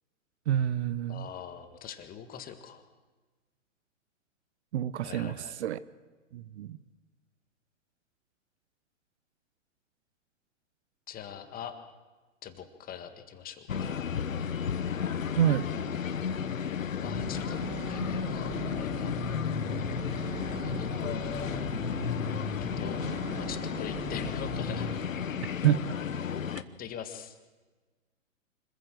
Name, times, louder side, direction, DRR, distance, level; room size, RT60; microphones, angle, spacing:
voice 1, 0.5-1.3 4.7-5.8 6.3-6.8 15.4-15.7 25.6-25.8, right 11 dB, 55° right, 16 dB, 0.9 m, -27 dB
voice 2, 1.1-2.8 5.0-5.5 11.1-11.7 12.4-14.0 17.0-17.6 17.9-19.1 20.4-20.9 22.6-23.0 23.4-24.9 26.8-27.3, left 8 dB, 20° left, 9 dB, 1.8 m, -42 dB
sound 1, 13.7-26.6, left 7 dB, 85° left, 1.2 m, -33 dB
sound 2, 17.0-25.0, right 1 dB, 15° right, 2.8 m, -38 dB
26.0 x 14.5 x 7.6 m, 1.3 s
hypercardioid pair, 125°, 39 cm